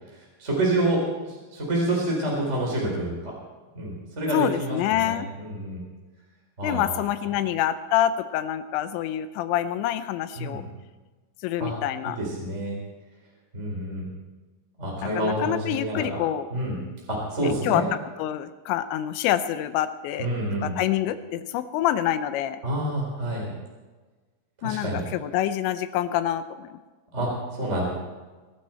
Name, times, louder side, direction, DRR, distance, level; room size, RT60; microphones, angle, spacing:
voice 1, 0.4-3.3 3.7-5.9 6.6-7.0 10.4-10.7 11.6-11.7 12.0-12.8 13.5-14.1 14.8-16.1 16.5-16.8 17.1-17.8 20.2-20.8 22.6-23.5 24.6-25.1 27.1-27.3 27.6-27.9, right 1 dB, 15° right, -3 dB, 3.6 m, -28 dB
voice 2, 4.3-5.3 6.6-10.6 11.4-12.2 15.0-16.5 17.4-17.8 18.2-20.3 20.6-22.6 24.6-26.8, left 11 dB, 80° left, 11 dB, 2.9 m, -26 dB
22.5 x 12.0 x 4.4 m, 1.3 s
omnidirectional pair, 5.4 m